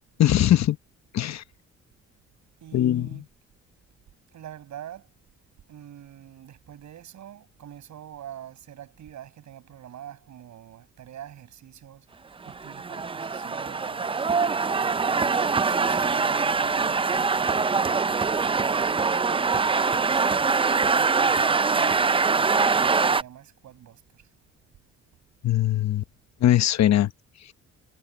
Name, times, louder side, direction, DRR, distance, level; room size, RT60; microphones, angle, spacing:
voice 1, 0.2-0.8 1.1-1.4 2.7-3.2 25.4-26.0 26.4-27.1, left 12 dB, 60° left, 1.1 m, -21 dB
voice 2, 2.6-3.3 4.3-5.1 5.7-14.3 15.1-20.5 20.9-24.3, right 11 dB, 70° right, 7.0 m, -45 dB
sound 1, 12.5-23.2, right 4 dB, 20° right, 0.5 m, -23 dB
cardioid pair, 90°, 30 cm